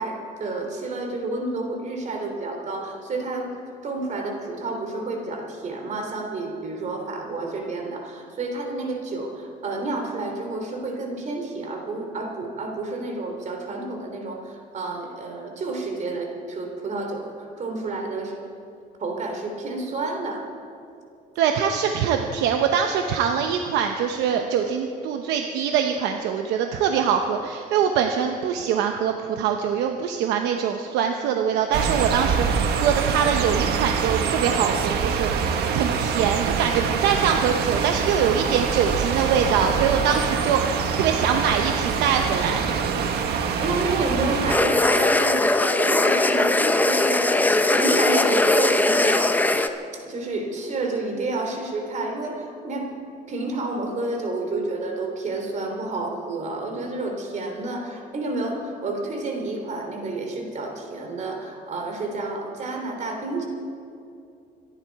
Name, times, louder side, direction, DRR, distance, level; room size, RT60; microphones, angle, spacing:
voice 1, 0.0-3.5 3.8-18.3 19.0-20.5 43.6-49.3 50.0-52.9 53.3-63.5, right 2 dB, 45° right, 3 dB, 3.3 m, -30 dB
voice 2, 21.4-42.7, right 7 dB, 90° right, 5 dB, 0.9 m, -23 dB
sound 1, 31.7-44.6, right 6 dB, 70° right, 1.4 m, -25 dB
sound 2, 44.5-49.7, left 2 dB, 10° left, 0.8 m, -20 dB
25.5 x 11.0 x 4.7 m, 2.5 s
cardioid pair, 110°, 17 cm